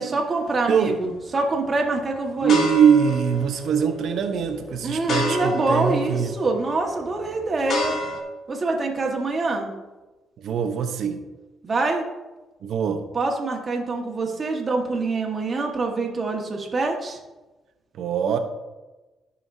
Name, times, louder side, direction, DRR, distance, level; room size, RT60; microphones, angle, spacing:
voice 1, 0.0-2.6 4.8-8.0 8.5-9.7 11.6-12.0 13.1-17.2, right 3 dB, 35° right, 0 dB, 1.6 m, -25 dB
sound 1, 0.9-1.3 1.9-8.2, left 2 dB, 65° left, 1.5 m, -31 dB
voice 2, 2.4-6.3 10.4-11.2 12.6-13.0 17.9-18.4, right 7 dB, 70° right, 6 dB, 0.9 m, -22 dB
14.0 x 5.6 x 2.8 m, 1.1 s
cardioid pair, 90°, 0 cm